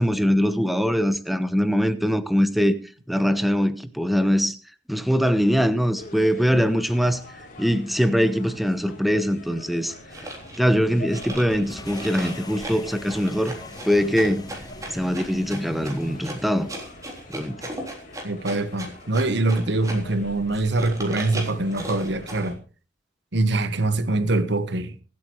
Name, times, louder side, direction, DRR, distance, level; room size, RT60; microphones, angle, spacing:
voice 1, 0.0-2.7 3.1-4.5 4.9-7.2 7.6-9.9 10.6-13.6 13.8-14.4 14.9-16.7 17.3-17.6, equal, ahead, 1.0 m, -22 dB
sound 1, 5.9-22.6, left 1 dB, 50° left, 3.7 m, -44 dB
sound 2, 10.1-10.6 11.1-20.1 20.5-22.5, right 1 dB, 20° right, 3.5 m, -37 dB
sound 3, 11.7-16.8, left 2 dB, 20° left, 1.2 m, -42 dB
voice 2, 18.2-22.6 23.3-25.0, right 2 dB, 70° right, 1.3 m, -24 dB
24.5 x 8.6 x 3.2 m
head